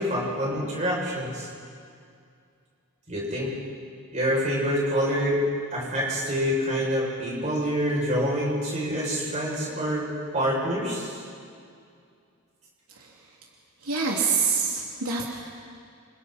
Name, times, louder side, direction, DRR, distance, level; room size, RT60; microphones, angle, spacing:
voice 1, 0.0-1.5 3.1-3.5 4.1-5.4 5.7-10.1 10.3-11.2, equal, 35° right, -5 dB, 7.2 m, -26 dB
voice 2, 13.8-15.3, right 5 dB, 85° right, -2 dB, 2.9 m, -26 dB
28.0 x 28.0 x 4.4 m, 2.3 s
head